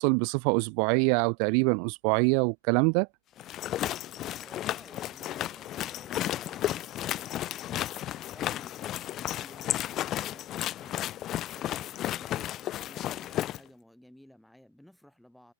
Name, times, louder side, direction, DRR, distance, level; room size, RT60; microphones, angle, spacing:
voice 1, 0.0-3.1, right 40 dB or more, 50° right, 0.4 m, -24 dB
sound 1, 3.4-13.6, left 13 dB, 30° left, 0.9 m, -33 dB
voice 2, 4.4-15.5, equal, ahead, 7.7 m, -56 dB
hypercardioid pair, 125°, 0 cm